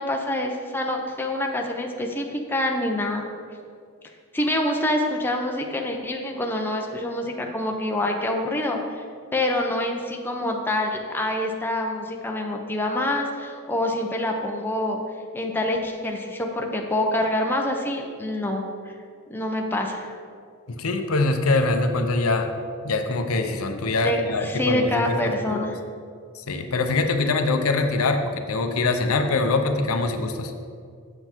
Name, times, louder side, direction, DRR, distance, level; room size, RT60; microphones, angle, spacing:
voice 1, 0.0-3.2 4.3-9.0 9.3-15.0 15.3-18.9 19.3-20.1 24.0-25.8, left 1 dB, 10° left, 1 dB, 0.7 m, -26 dB
voice 2, 20.7-22.5 22.8-25.6 26.3-30.5, left 3 dB, 70° left, 6 dB, 0.7 m, -23 dB
8.0 x 6.9 x 4.4 m, 2.2 s
head